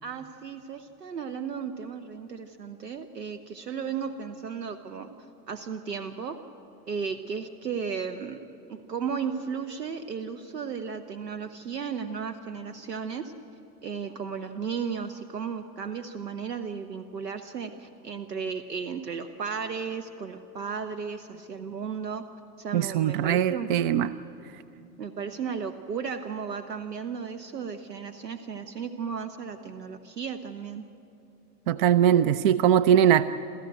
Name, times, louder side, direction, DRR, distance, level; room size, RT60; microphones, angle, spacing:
voice 1, 0.0-5.1 5.5-6.4 6.9-8.4 8.7-13.3 13.8-22.2 22.6-23.7 25.0-30.8, right 6 dB, 75° right, 8 dB, 1.2 m, -35 dB
voice 2, 22.7-24.1 31.7-33.2, right 10 dB, 35° right, 15 dB, 0.5 m, -21 dB
28.5 x 13.5 x 9.1 m, 2.6 s
figure-of-eight pair, 95°, 49 cm